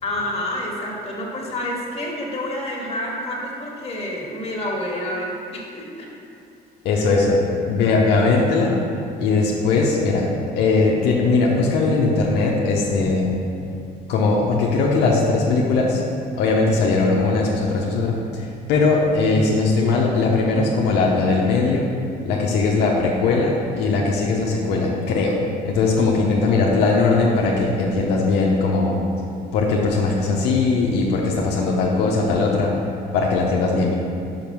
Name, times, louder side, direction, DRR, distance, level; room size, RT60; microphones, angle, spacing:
voice 1, 0.0-6.1 7.0-7.1 8.2-8.3, left 1 dB, 35° left, -3 dB, 1.8 m, -28 dB
voice 2, 6.8-8.7 9.2-10.3 10.6-13.3 14.1-16.0 16.4-21.9 22.2-25.4 25.6-29.0 29.5-32.7 33.1-33.9, left 3 dB, 80° left, -2 dB, 0.9 m, -19 dB
5.7 x 5.3 x 6.0 m, 2.6 s
cardioid pair, 110°, 17 cm